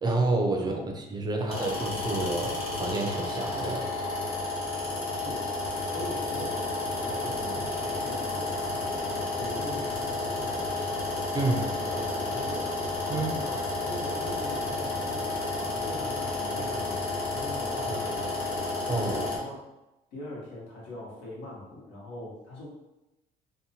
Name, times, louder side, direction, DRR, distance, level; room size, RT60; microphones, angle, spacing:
voice 1, 0.0-3.9 11.3-11.6 13.1-13.3 17.7-17.8 18.9-19.3, right 2 dB, 25° right, 2 dB, 0.4 m, -29 dB
voice 2, 0.5-0.9 1.3-1.6 5.1-5.5 5.9-6.6 7.0-9.0 9.4-11.0 11.4-17.0 17.3-18.6 19.1-19.6 20.1-22.7, left 1 dB, 85° left, -5 dB, 1.1 m, -42 dB
sound 1, 1.5-19.4, left 2 dB, 35° left, 1.1 m, -31 dB
2.7 x 2.2 x 2.8 m, 0.96 s
cardioid pair, 110°, 17 cm